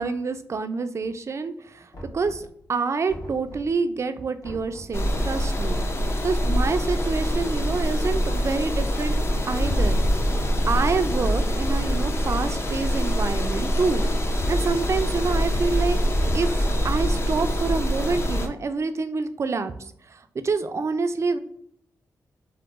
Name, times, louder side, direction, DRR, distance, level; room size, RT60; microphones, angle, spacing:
voice 1, 0.0-1.9 2.1-5.8 6.2-9.1 9.5-10.0 10.7-14.0 14.5-16.0 16.3-21.4, right 4 dB, 45° right, 9 dB, 0.3 m, -27 dB
Knock, 1.9-2.7 3.1-3.9 4.4-5.0 5.5-6.3, equal, 65° left, 1.1 m, -41 dB
sound 1, 4.9-18.5, equal, 40° left, 0.5 m, -24 dB
2.9 x 2.0 x 3.5 m, 0.67 s
cardioid pair, 55°, 7 cm